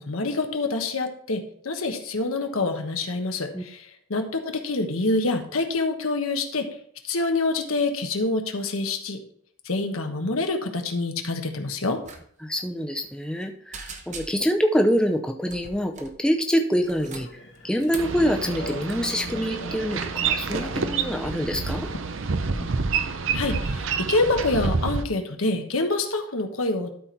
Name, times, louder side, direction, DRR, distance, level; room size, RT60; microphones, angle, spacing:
voice 1, 0.0-6.8 7.0-9.2 9.6-12.0 23.3-26.9, left 2 dB, 90° left, 5 dB, 1.2 m, -26 dB
sound 1, 12.0-12.2 12.5-12.6 13.0-13.4 13.7-14.6 15.5-16.2 16.7-18.2 18.6-18.9, right 4 dB, 35° right, 1.0 m, -41 dB
voice 2, 12.4-17.3 17.6-21.9, equal, 5° left, 3 dB, 0.6 m, -25 dB
Telephone, 17.0-23.0, left 2 dB, 55° left, 1.1 m, -43 dB
Boat Water vehicle, 18.0-25.0, right 5 dB, 70° right, 0.7 m, -28 dB
12.5 x 4.3 x 4.6 m, 0.64 s
head